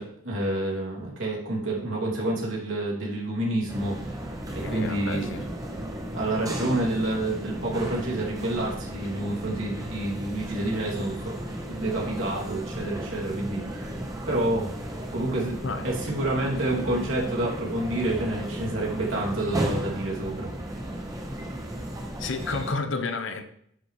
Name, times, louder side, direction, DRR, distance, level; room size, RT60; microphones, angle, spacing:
voice 1, 0.0-4.2 4.5-5.3 6.1-11.3 11.7-13.9 14.3-14.7 15.1-15.6 15.8-20.5, right 1 dB, 75° right, -3 dB, 2.5 m, -28 dB
sound 1, 3.7-22.7, right 1 dB, 15° right, 1.0 m, -34 dB
voice 2, 4.6-5.5 15.6-15.9 22.2-23.4, left 3 dB, 70° left, 8 dB, 0.8 m, -31 dB
9.4 x 6.1 x 3.1 m, 0.70 s
head